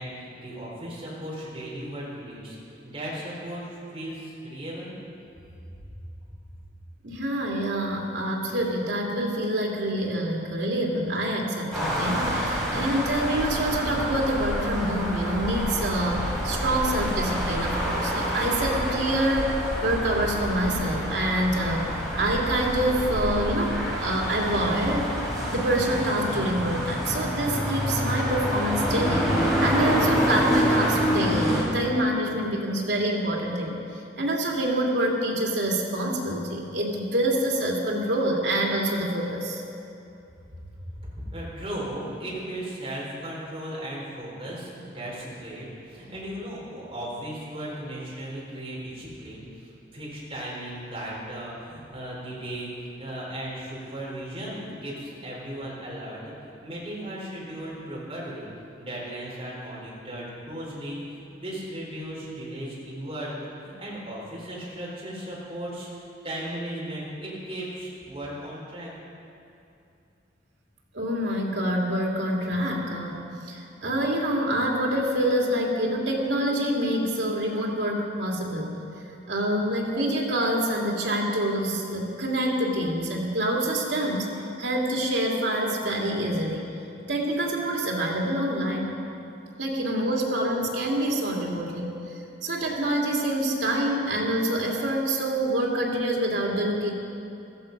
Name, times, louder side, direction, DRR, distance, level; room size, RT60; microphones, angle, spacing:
voice 1, 0.0-2.6 2.8-5.0 40.8-58.5 58.8-63.3 63.6-68.9, right 1 dB, 30° right, -5 dB, 4.2 m, -36 dB
voice 2, 7.0-21.9 22.1-23.7 24.0-25.1 25.5-33.8 34.2-39.6 70.9-73.2 73.5-78.8 79.3-86.7 87.1-89.0 89.6-91.9 92.4-96.9, right 1 dB, 85° right, -1 dB, 2.6 m, -26 dB
sound 1, 11.7-31.6, equal, ahead, 4.3 m, -27 dB
15.0 x 14.0 x 5.4 m, 2.7 s
head